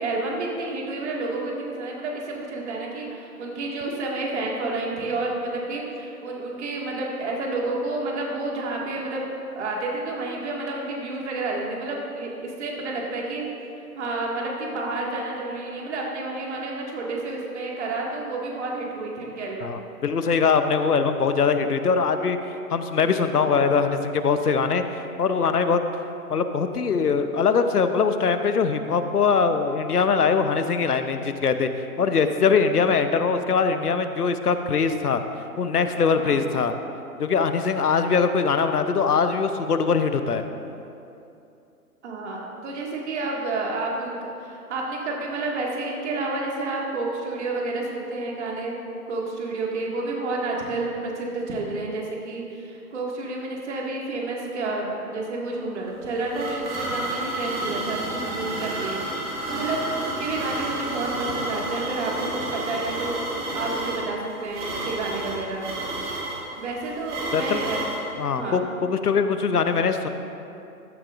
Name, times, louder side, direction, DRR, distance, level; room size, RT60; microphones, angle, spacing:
voice 1, 0.0-9.2 9.6-13.5 14.0-19.8 36.1-36.5 42.0-48.8 49.1-65.7 66.0-66.1 66.6-67.9 68.3-68.7, right 2 dB, 45° right, -1 dB, 2.1 m, -30 dB
voice 2, 19.6-22.4 22.7-24.8 25.2-25.8 26.3-31.7 32.0-35.2 35.6-36.7 37.2-40.4 67.3-67.6 68.2-70.1, left 5 dB, 80° left, 9 dB, 0.9 m, -22 dB
sound 1, 55.9-68.0, right 1 dB, 20° right, 1.9 m, -31 dB
14.5 x 11.0 x 2.5 m, 2.7 s
figure-of-eight pair, 130°, 45 cm